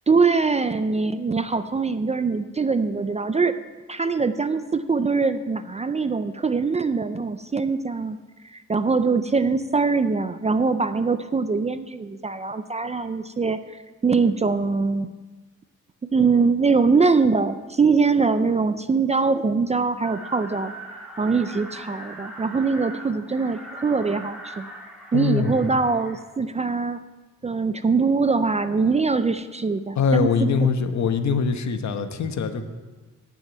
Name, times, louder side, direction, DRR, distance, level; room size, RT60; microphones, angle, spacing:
voice 1, 0.1-3.6 3.9-8.2 8.5-15.1 16.1-20.7 21.2-24.7 25.1-27.0 27.4-30.3, right 4 dB, 25° right, 11 dB, 0.4 m, -22 dB
sound 1, 20.0-26.2, right 1 dB, 5° right, 2.4 m, -40 dB
voice 2, 25.1-25.6 29.9-32.6, left 5 dB, 65° left, 8 dB, 1.0 m, -23 dB
10.0 x 7.4 x 9.0 m, 1.3 s
wide cardioid pair, 155°, 30 cm